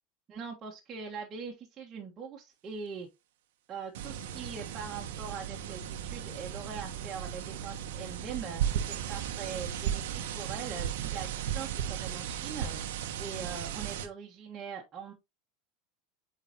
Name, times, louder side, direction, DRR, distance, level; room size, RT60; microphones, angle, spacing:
voice 1, 0.3-3.1 3.7-15.1, right 6 dB, 30° right, 1.4 m, -42 dB
sound 1, 3.9-14.1, right 9 dB, 80° right, 1.0 m, -35 dB
8.2 x 4.0 x 2.9 m
supercardioid pair, 115°, 0 cm